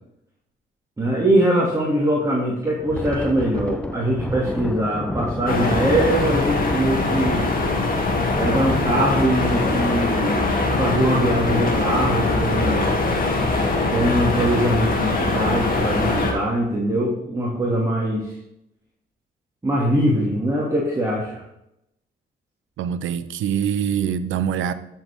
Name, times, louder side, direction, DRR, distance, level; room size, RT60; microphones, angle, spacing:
voice 1, 1.0-7.5 8.4-13.0 13.9-18.3 19.6-21.4, right 1 dB, 15° right, 2.7 m, -22 dB
Thunder, 2.7-11.8 12.1-12.3 12.7-13.0 13.6-14.0, left 1 dB, 5° left, 0.6 m, -32 dB
sound 1, 5.5-16.3, left 2 dB, 45° left, 2.6 m, -22 dB
voice 2, 22.8-24.7, right 8 dB, 80° right, 0.8 m, -24 dB
13.0 x 7.2 x 3.7 m
cardioid pair, 90°, 20 cm